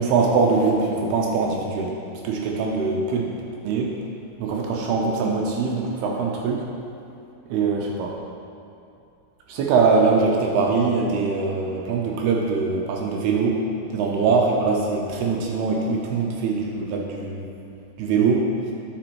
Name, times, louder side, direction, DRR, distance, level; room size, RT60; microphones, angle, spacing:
voice 1, 0.0-2.0 2.2-3.3 3.6-3.9 4.4-6.6 7.5-8.2 9.5-13.6 13.9-17.5 18.0-18.5, right 4 dB, 80° right, -1 dB, 2.4 m, -22 dB
13.0 x 5.1 x 2.9 m, 2.5 s
omnidirectional pair, 5.1 m